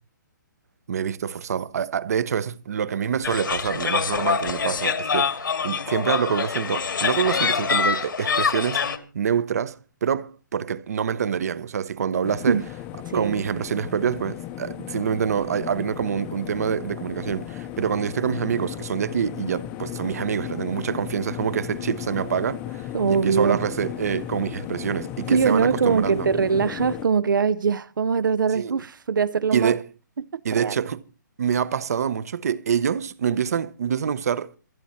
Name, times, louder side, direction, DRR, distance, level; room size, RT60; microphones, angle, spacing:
voice 1, 0.9-12.6 13.1-26.3 28.5-28.8 29.5-29.8 30.4-31.0 31.4-34.5, right 7 dB, 50° right, 0.8 m, -26 dB
sound 1, 3.2-9.0, left 6 dB, 85° left, 2.2 m, -25 dB
sound 2, 12.2-27.1, left 12 dB, 15° left, 0.7 m, -35 dB
voice 2, 13.0-13.4 22.9-23.6 25.3-29.7 30.2-30.3 30.5-30.8, right 6 dB, 80° right, 0.6 m, -22 dB
26.5 x 9.4 x 4.3 m
hypercardioid pair, 170°, 11 cm